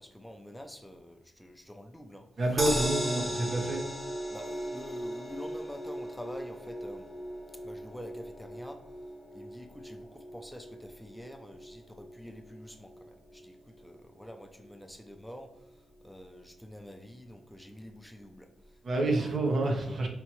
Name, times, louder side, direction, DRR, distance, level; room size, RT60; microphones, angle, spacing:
voice 1, 0.0-2.3 4.3-7.1 7.6-8.8 9.3-20.1, equal, 5° left, 5 dB, 0.6 m, -47 dB
voice 2, 2.4-3.8 18.8-20.1, right 2 dB, 60° right, 1 dB, 1.1 m, -28 dB
sound 1, 2.6-14.8 15.2-15.3 15.6-15.7, equal, 10° right, 1.0 m, -38 dB
5.6 x 3.0 x 3.1 m, 0.85 s
cardioid pair, 60°, 0 cm